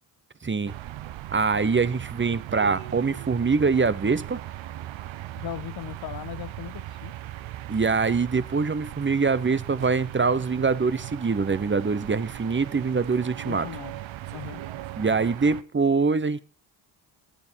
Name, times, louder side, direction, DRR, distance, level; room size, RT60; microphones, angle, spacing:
voice 1, 0.4-0.7 1.3-4.4 7.7-13.7 15.0-16.4, right 4 dB, 25° right, 0.9 m, -24 dB
sound 1, 0.7-15.6, right 14 dB, 70° right, 0.9 m, -38 dB
voice 2, 5.4-7.1 13.4-13.9 14.3-14.6, left 12 dB, 50° left, 0.5 m, -38 dB
18.5 x 8.3 x 4.5 m
supercardioid pair, 60°, 48 cm